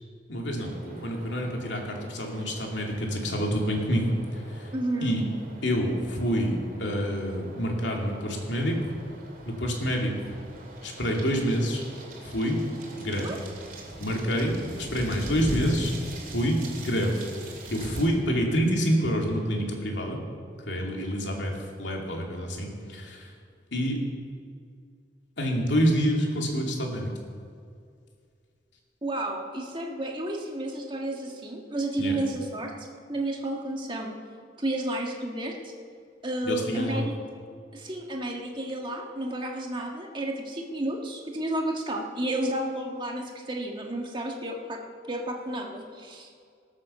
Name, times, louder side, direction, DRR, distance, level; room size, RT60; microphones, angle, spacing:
voice 1, 0.3-4.1 4.5-4.7 5.0-5.2 5.6-8.9 9.5-10.4 10.8-11.8 12.2-12.6 13.0-13.3 14.0-15.9 16.3-17.3 17.7-20.2 20.7-21.5 21.8-23.3 23.7-24.0 25.4-27.1 32.0-32.1 36.4-37.0, equal, 80° left, 0 dB, 2.6 m, -27 dB
sound 1, 0.6-18.1, right 1 dB, 50° right, 2.7 m, -42 dB
voice 2, 4.7-5.2 13.2-13.4 29.0-34.2 34.6-35.7 36.2-37.1 37.7-44.8 45.1-46.3, right 1 dB, 25° right, 1 dB, 1.6 m, -31 dB
18.0 x 7.6 x 6.9 m, 2.2 s
head